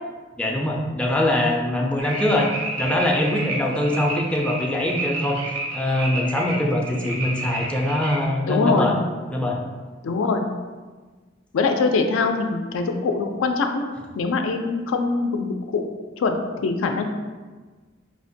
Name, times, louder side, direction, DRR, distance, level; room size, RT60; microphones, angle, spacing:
voice 1, 0.4-2.5 2.8-5.4 5.7-9.0 9.3-9.6, left 1 dB, 5° left, -1 dB, 0.3 m, -23 dB
sound 1, 2.0-8.3, right 2 dB, 80° right, 0.7 m, -31 dB
voice 2, 8.5-9.0 10.0-10.5 11.5-13.8 14.2-15.9 16.2-17.0, left 4 dB, 85° left, 5 dB, 0.4 m, -23 dB
4.9 x 2.1 x 2.6 m, 1.4 s
head